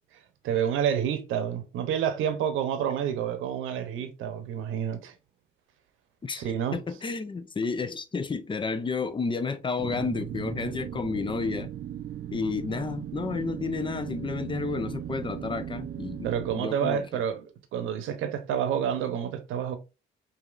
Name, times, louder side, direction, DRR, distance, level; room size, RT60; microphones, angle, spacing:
voice 1, 0.4-5.1 6.3-6.8 16.2-17.5 17.7-19.8, right 9 dB, 85° right, 0.8 m, -29 dB
voice 2, 6.7-11.7 12.3-16.3 16.6-17.2, left 4 dB, 25° left, 0.5 m, -31 dB
sound 1, 9.8-16.6, right 10 dB, 50° right, 0.4 m, -37 dB
5.0 x 2.7 x 2.4 m
cardioid pair, 90°, 20 cm